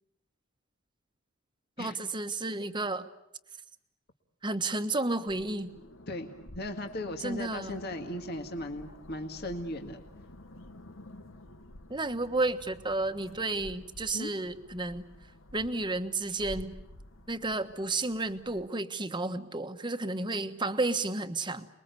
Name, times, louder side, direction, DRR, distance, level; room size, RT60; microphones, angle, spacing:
voice 1, 1.8-3.1 4.4-5.7 7.2-7.8 11.9-15.1 15.5-16.7 17.3-21.7, right 2 dB, 20° right, 9 dB, 1.3 m, -32 dB
sound 1, 5.3-18.7, left 1 dB, 70° left, 1.5 m, -50 dB
voice 2, 6.6-10.0 14.1-14.3, left 1 dB, 50° left, 4 dB, 1.9 m, -37 dB
29.5 x 22.0 x 8.3 m, 0.81 s
head